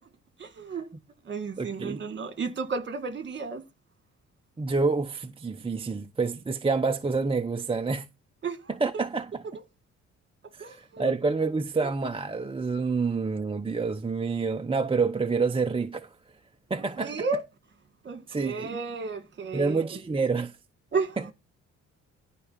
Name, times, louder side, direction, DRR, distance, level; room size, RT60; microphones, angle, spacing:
voice 1, 0.4-0.9 1.3-3.6 8.4-9.0 10.6-11.1 17.0-17.4 18.0-19.8 20.9-21.2, right 4 dB, 40° right, 2.2 m, -33 dB
voice 2, 1.6-2.0 4.6-8.0 8.7-9.4 10.5-16.1 16.7-17.3 18.3-18.8 19.5-20.6 21.2-21.3, right 4 dB, 20° right, 0.8 m, -28 dB
13.5 x 5.0 x 5.9 m
cardioid pair, 90°, 30 cm